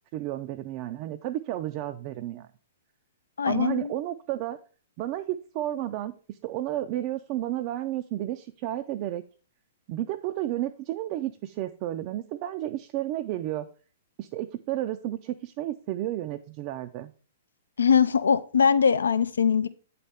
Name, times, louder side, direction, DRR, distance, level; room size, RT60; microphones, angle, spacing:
voice 1, 0.1-2.5 3.5-4.6 5.0-9.2 9.9-13.7 14.2-17.1, right 14 dB, 45° right, 8 dB, 0.3 m, -32 dB
voice 2, 3.4-3.9 17.8-19.7, left 6 dB, 85° left, 14 dB, 0.3 m, -22 dB
8.3 x 4.2 x 3.4 m, 0.39 s
hypercardioid pair, 125°, 0 cm